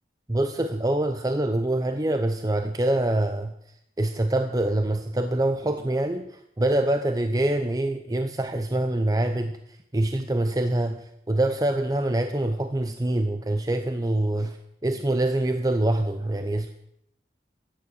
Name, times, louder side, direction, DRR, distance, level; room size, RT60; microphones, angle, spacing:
voice 1, 0.3-3.5 4.0-6.3 6.6-9.5 9.9-14.6 14.8-16.7, right 1 dB, 20° right, 7 dB, 0.6 m, -25 dB
14.0 x 9.5 x 6.4 m, 0.78 s
head